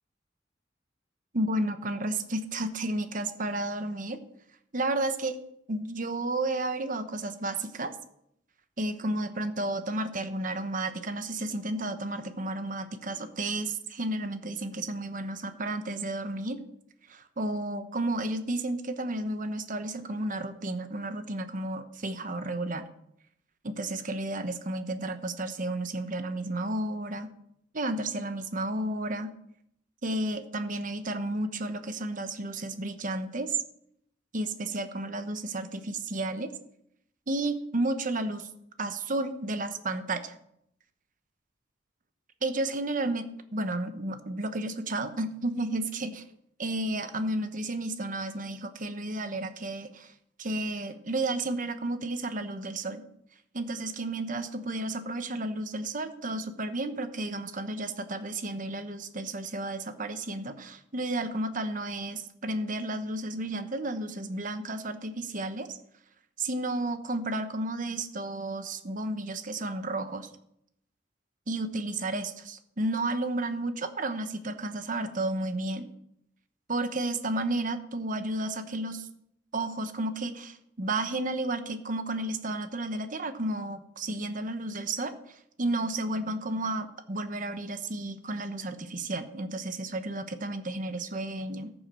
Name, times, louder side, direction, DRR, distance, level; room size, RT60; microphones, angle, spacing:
voice 1, 1.3-4.2 4.7-5.4 5.7-7.9 8.8-16.6 17.1-22.9 23.6-27.3 27.7-29.3 30.0-33.6 34.3-36.5 37.3-38.5 38.8-40.3 42.4-43.2 43.5-46.2 46.6-50.1 50.4-53.0 53.5-65.8 66.4-70.3 71.5-75.9 76.7-79.1 79.5-91.7, right 2 dB, 45° right, 9 dB, 1.0 m, -32 dB
13.5 x 7.3 x 6.2 m, 0.74 s
head